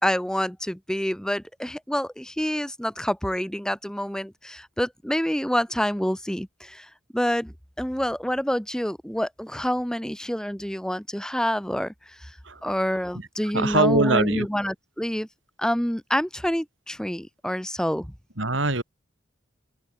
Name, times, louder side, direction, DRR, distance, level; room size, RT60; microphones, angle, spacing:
voice 1, 0.0-7.5 7.8-12.4 12.6-15.3 15.6-18.1, equal, 5° left, 1.3 m, -27 dB
voice 2, 13.5-14.5 18.4-18.8, right 2 dB, 85° right, 5.5 m, -22 dB
open air
head